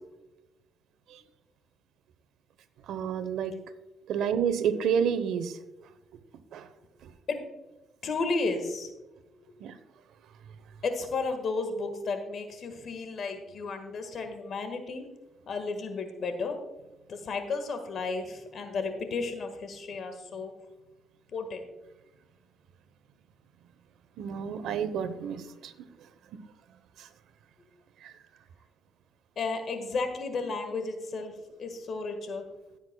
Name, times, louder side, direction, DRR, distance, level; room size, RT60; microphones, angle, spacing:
voice 1, 2.8-3.6 4.1-5.6 6.5-6.7 7.0-7.1 9.6-9.8 24.2-26.4 27.0-27.1 28.0-28.2, right 7 dB, 80° right, 12 dB, 0.9 m, -30 dB
voice 2, 8.0-8.9 10.8-15.0 15.5-16.6 17.1-20.5 21.3-21.7 29.3-31.3 31.6-32.4, left 3 dB, 60° left, 7 dB, 1.6 m, -33 dB
16.0 x 8.1 x 2.3 m, 1.1 s
cardioid pair, 90°, 0 cm